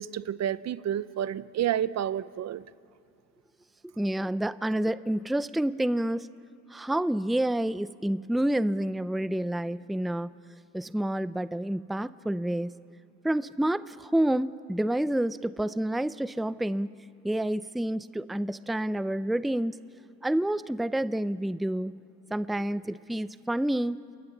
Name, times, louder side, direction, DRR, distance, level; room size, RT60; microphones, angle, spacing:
voice 1, 0.0-2.6, right 10 dB, 60° right, 17 dB, 0.7 m, -30 dB
voice 2, 4.0-6.3 6.7-10.3 10.7-12.8 13.2-16.9 17.2-19.8 20.2-21.9 22.3-24.0, right 1 dB, ahead, 15 dB, 0.5 m, -28 dB
29.5 x 22.5 x 7.1 m, 2.6 s
cardioid pair, 90°, 30 cm